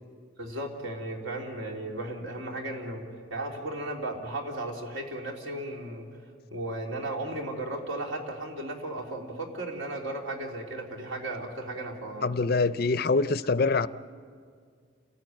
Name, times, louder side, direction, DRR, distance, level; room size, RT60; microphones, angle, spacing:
voice 1, 0.4-3.0 3.3-6.1 6.5-12.3, right 1 dB, 80° right, 0 dB, 3.4 m, -35 dB
voice 2, 12.2-13.9, left 3 dB, 50° left, 15 dB, 0.5 m, -24 dB
29.5 x 14.0 x 9.1 m, 2.1 s
head